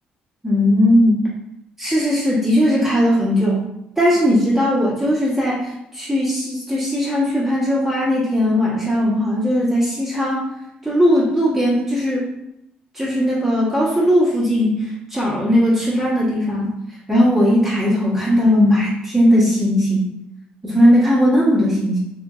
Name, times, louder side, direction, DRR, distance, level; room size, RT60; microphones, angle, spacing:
voice 1, 0.4-1.2 1.8-3.6 4.0-10.4 10.8-12.3 12.9-16.7 17.1-20.1 20.6-22.0, equal, 15° right, -8 dB, 0.9 m, -18 dB
2.8 x 2.5 x 2.3 m, 0.84 s
supercardioid pair, 75°, 3 cm